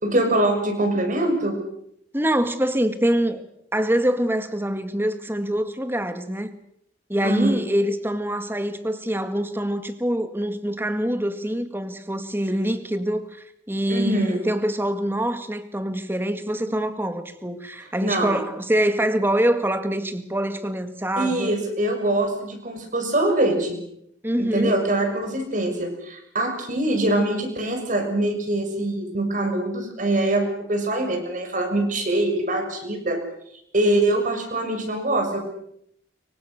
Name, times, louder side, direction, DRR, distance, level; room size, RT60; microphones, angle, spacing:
voice 1, 0.0-1.6 7.2-7.6 13.9-14.4 18.0-18.4 21.2-23.8 24.4-33.2 33.7-35.4, right 1 dB, 45° right, 5 dB, 6.6 m, -23 dB
voice 2, 2.1-3.4 3.7-6.5 7.1-21.6 24.2-24.8, right 1 dB, 10° right, 9 dB, 2.0 m, -25 dB
26.0 x 24.0 x 6.6 m, 0.73 s
head